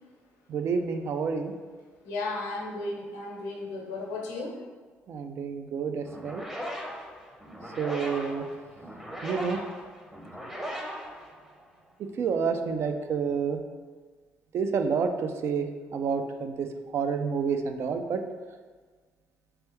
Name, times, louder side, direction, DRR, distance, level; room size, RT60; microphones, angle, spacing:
voice 1, 0.5-1.5 5.1-6.4 7.8-8.4 9.2-9.6 12.2-13.6 14.5-15.7 15.9-16.7 16.9-18.2, right 5 dB, 55° right, 6 dB, 0.4 m, -29 dB
voice 2, 2.0-4.6, left 2 dB, 90° left, -1 dB, 0.7 m, -34 dB
sound 1, 6.0-11.9, equal, 10° right, 0.7 m, -39 dB
3.5 x 3.3 x 3.0 m, 1.5 s
supercardioid pair, 65°, 5 cm